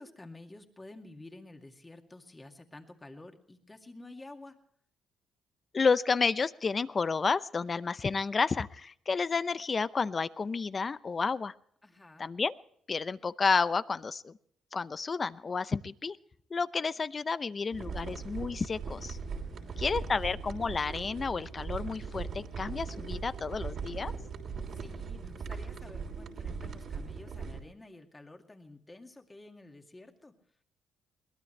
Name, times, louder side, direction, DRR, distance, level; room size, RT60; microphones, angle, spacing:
voice 1, 0.0-4.6 11.8-12.3 19.4-20.1 24.7-30.3, left 2 dB, 20° left, 4 dB, 2.2 m, -51 dB
voice 2, 5.7-11.5 12.2-12.5 12.9-14.4 14.7-16.2 16.5-19.2 19.8-24.1, left 4 dB, 35° left, 16 dB, 0.6 m, -31 dB
sound 1, 17.7-27.6, right 5 dB, 60° right, 3.3 m, -39 dB
22.5 x 18.5 x 3.3 m, 0.65 s
cardioid pair, 90°, 0 cm